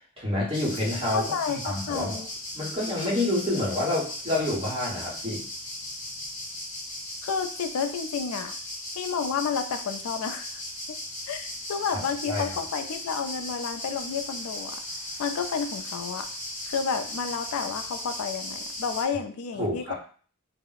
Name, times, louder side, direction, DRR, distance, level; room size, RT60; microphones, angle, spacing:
voice 1, 0.2-2.2 2.5-5.4 11.9-12.0 12.3-12.5 19.6-19.9, left 1 dB, 25° right, -5 dB, 1.2 m, -28 dB
sound 1, 0.5-19.0, left 1 dB, 35° left, 0.9 m, -37 dB
voice 2, 1.1-2.3 7.2-8.5 9.0-10.6 10.9-11.0 11.3-14.8 15.2-16.3 16.7-19.9, left 6 dB, 85° left, 8 dB, 0.4 m, -31 dB
2.4 x 2.0 x 3.9 m, 0.43 s
head